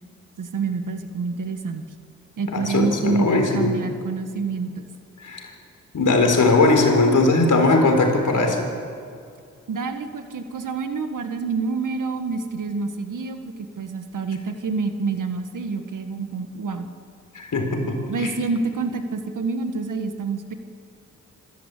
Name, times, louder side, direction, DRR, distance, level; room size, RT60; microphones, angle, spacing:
voice 1, 0.4-1.8 2.4-4.8 9.7-16.9 18.1-20.5, right 4 dB, 80° right, 7 dB, 1.7 m, -27 dB
voice 2, 2.5-3.7 5.2-5.5 5.9-8.7 17.3-18.3, left 3 dB, 75° left, 3 dB, 4.4 m, -19 dB
26.5 x 13.5 x 8.4 m, 2.3 s
cardioid pair, 50°, 31 cm